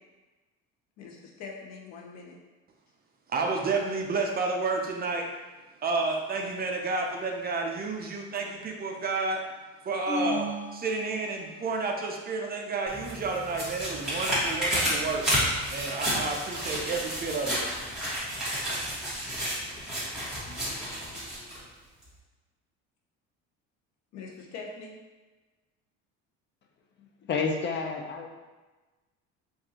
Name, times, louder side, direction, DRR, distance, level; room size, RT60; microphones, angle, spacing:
voice 1, 1.0-2.4 24.1-25.0, left 4 dB, 65° left, 1 dB, 0.8 m, -43 dB
voice 2, 3.3-5.3 5.8-9.4 9.8-15.2 15.7-17.6, right 3 dB, 30° right, 1 dB, 0.5 m, -30 dB
sound 1, 10.1-11.7, left 1 dB, 20° left, 1.4 m, -34 dB
sound 2, 12.9-21.6 22.0-22.1, equal, ahead, 1.5 m, -31 dB
voice 3, 27.0-28.3, left 4 dB, 40° left, 3 dB, 0.5 m, -30 dB
4.6 x 2.6 x 2.8 m, 1.2 s
cardioid pair, 115°, 30 cm